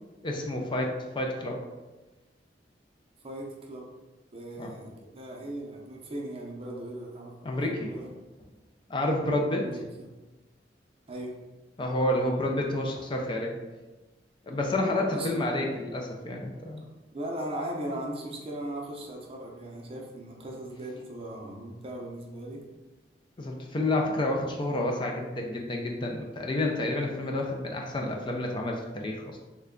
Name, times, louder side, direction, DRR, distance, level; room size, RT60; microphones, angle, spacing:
voice 1, 0.2-1.6 4.6-4.7 7.4-7.9 8.9-9.7 11.8-13.5 14.5-16.8 23.4-29.4, left 1 dB, 30° left, 0 dB, 0.4 m, -29 dB
voice 2, 3.2-3.9 4.3-8.1 9.5-9.8 11.1-11.3 15.1-15.4 17.1-22.6, right 1 dB, 35° right, -2 dB, 0.6 m, -38 dB
3.3 x 2.2 x 3.6 m, 1.2 s
head